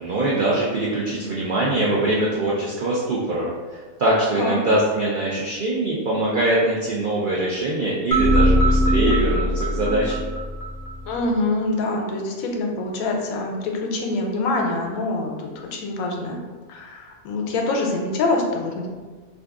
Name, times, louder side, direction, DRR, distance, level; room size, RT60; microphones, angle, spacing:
voice 1, 0.0-10.2, right 1 dB, 85° right, -5 dB, 0.4 m, -23 dB
sound 1, 8.1-11.2, equal, 55° left, 0.7 m, -20 dB
voice 2, 11.0-16.4 16.7-18.9, left 2 dB, 85° left, 1 dB, 1.0 m, -25 dB
2.6 x 2.3 x 3.5 m, 1.4 s
omnidirectional pair, 1.5 m